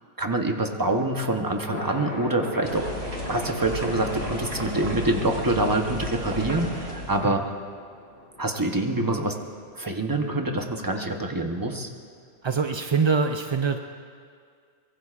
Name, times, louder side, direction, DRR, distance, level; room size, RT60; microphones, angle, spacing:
voice 1, 0.2-2.9 3.3-7.4 8.4-9.4 9.8-11.9, right 2 dB, 20° right, 3 dB, 0.9 m, -26 dB
Thunder, 1.0-12.2, left 1 dB, 55° left, 2.1 m, -42 dB
sound 1, 2.6-7.3, equal, 85° right, 2.6 m, -33 dB
voice 2, 12.4-13.8, right 5 dB, 40° right, 5 dB, 0.4 m, -24 dB
23.5 x 22.0 x 2.5 m, 2.1 s
omnidirectional pair, 1.2 m